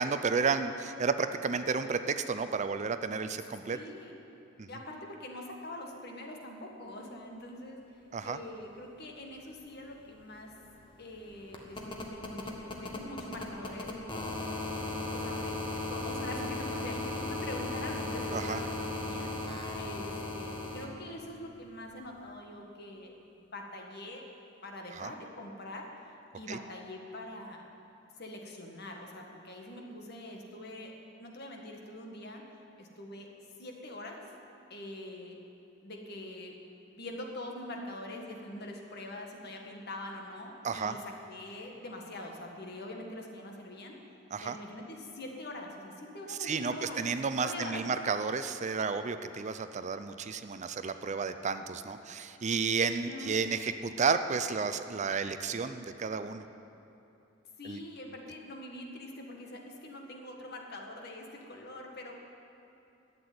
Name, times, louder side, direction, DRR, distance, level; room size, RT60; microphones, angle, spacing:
voice 1, 0.0-3.8 4.6-4.7 8.1-8.4 18.3-18.6 24.9-25.1 26.5-26.6 40.6-41.0 44.3-44.6 46.3-56.4 57.6-57.8, right 5 dB, 40° right, 10 dB, 0.5 m, -32 dB
voice 2, 3.7-4.2 4.7-7.8 8.2-10.5 11.0-14.4 14.7-24.2 24.6-25.9 26.3-27.7 28.2-30.9 31.2-32.4 32.8-33.3 33.6-34.2 34.7-35.4 35.8-36.5 36.9-44.0 44.4-47.0 47.4-47.8 53.1-53.7 57.6-62.2, left 1 dB, 55° left, 1 dB, 1.7 m, -44 dB
sound 1, 9.6-9.7 9.9-20.8 22.3-22.4, left 2 dB, 25° left, 1.4 m, -37 dB
12.0 x 8.3 x 9.5 m, 2.7 s
head